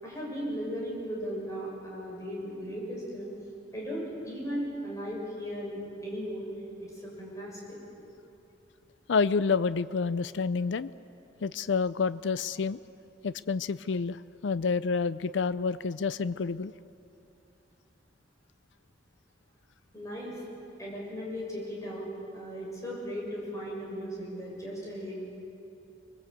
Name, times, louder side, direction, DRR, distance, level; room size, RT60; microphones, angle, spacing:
voice 1, 0.0-3.3 3.7-6.5 6.8-7.8 19.9-20.4 20.8-22.1 22.3-25.2, equal, 15° left, -4 dB, 7.0 m, -37 dB
voice 2, 9.1-10.9 11.4-12.8 13.2-14.2 14.4-16.7, left 5 dB, 65° left, 16 dB, 0.5 m, -28 dB
25.0 x 21.5 x 8.2 m, 2.8 s
head